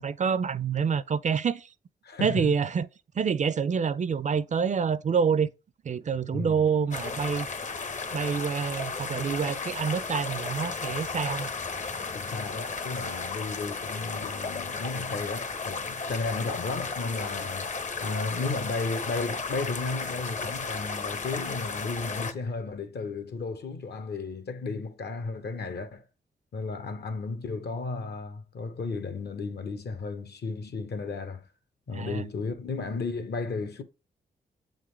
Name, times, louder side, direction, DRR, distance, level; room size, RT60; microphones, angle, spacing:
voice 1, 0.0-1.7 2.2-2.9 3.2-5.5 5.8-7.5 8.1-11.5 31.9-32.2, right 6 dB, 45° right, 0.4 m, -27 dB
voice 2, 2.0-2.5 6.3-6.7 12.1-26.1 26.5-31.5 31.9-33.8, left 3 dB, 70° left, 1.0 m, -34 dB
sound 1, 6.9-22.3, left 4 dB, 45° left, 0.8 m, -34 dB
7.9 x 3.8 x 3.2 m
cardioid pair, 55°, 18 cm